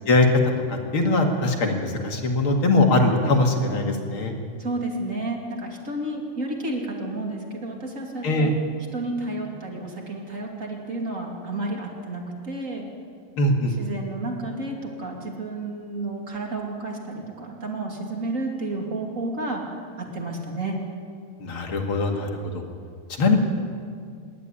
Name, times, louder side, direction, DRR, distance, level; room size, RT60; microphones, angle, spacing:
voice 1, 0.7-4.3 8.2-8.5 13.4-13.7 21.4-22.6 23.2-23.4, left 2 dB, 40° left, 2 dB, 2.1 m, -21 dB
voice 2, 4.6-8.5 8.9-12.9 13.8-19.6 20.0-20.8, right 2 dB, 25° right, 0 dB, 2.5 m, -31 dB
26.5 x 12.0 x 9.9 m, 2.2 s
omnidirectional pair, 4.7 m